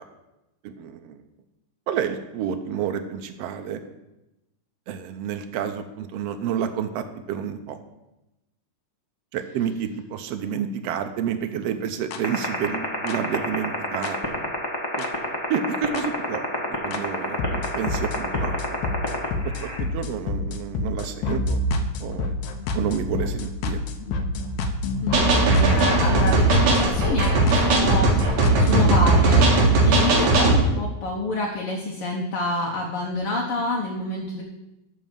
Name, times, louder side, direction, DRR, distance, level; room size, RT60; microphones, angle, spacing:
voice 1, 0.6-1.2 1.9-3.8 4.9-7.8 9.3-14.3 15.0-15.1 15.5-16.5 16.8-18.6 18.8-18.9 19.6-21.6 22.0-22.3 22.7-23.8, right 8 dB, 80° right, 7 dB, 1.4 m, -29 dB
sound 1, 12.1-12.2 13.1-13.2 14.0-14.1 15.0-15.1 16.0-16.1 16.9-17.0 17.4-29.2, left 2 dB, 80° left, 2.2 m, -27 dB
sound 2, 12.2-19.8, left 4 dB, 35° left, 0.3 m, -27 dB
voice 2, 25.0-34.4, left 2 dB, 60° left, -1 dB, 1.7 m, -28 dB
sound 3, 25.1-30.6, right 2 dB, 65° right, 2.7 m, -18 dB
12.0 x 4.2 x 7.2 m, 0.95 s
omnidirectional pair, 3.6 m